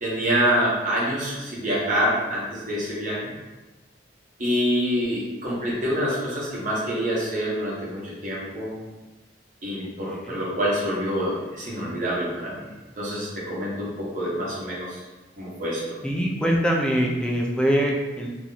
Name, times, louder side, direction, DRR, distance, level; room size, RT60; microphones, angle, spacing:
voice 1, 0.0-3.3 4.4-8.7 9.6-12.6 13.0-15.0 15.4-15.8, equal, 45° right, -6 dB, 1.1 m, -26 dB
voice 2, 10.0-10.4 16.0-18.3, equal, 5° left, -1 dB, 0.4 m, -23 dB
2.9 x 2.7 x 3.9 m, 1.1 s
head